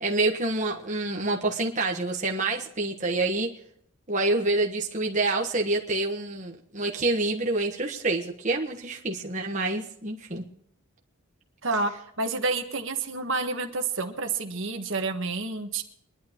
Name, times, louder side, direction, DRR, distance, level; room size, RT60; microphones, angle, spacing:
voice 1, 0.0-3.5 4.1-10.4, right 2 dB, 35° right, 1 dB, 1.3 m, -27 dB
voice 2, 12.2-15.8, right 3 dB, 55° right, 5 dB, 1.5 m, -29 dB
24.0 x 11.5 x 3.1 m, 0.67 s
head